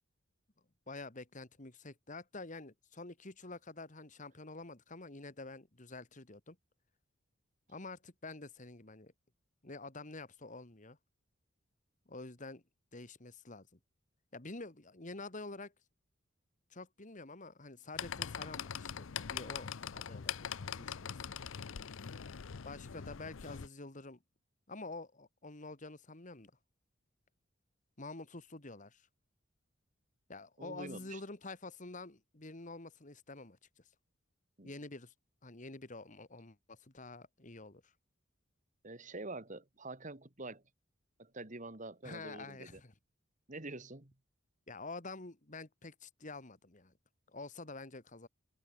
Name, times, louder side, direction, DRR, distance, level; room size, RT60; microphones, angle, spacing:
voice 1, 0.9-6.6 7.7-9.1 9.6-11.0 12.1-12.6 12.9-13.7 14.3-15.7 16.7-21.2 22.6-24.2 24.7-26.5 28.0-29.1 30.3-33.8 34.6-35.1 35.4-37.9 42.0-42.9 44.7-46.9 47.3-48.3, left 3 dB, 40° left, 2.0 m, -48 dB
sound 1, 17.9-23.7, left 8 dB, 80° left, 0.6 m, -42 dB
voice 2, 30.6-31.2 34.6-34.7 38.8-40.6 41.2-42.8 43.5-44.1, right 2 dB, 40° right, 2.5 m, -46 dB
head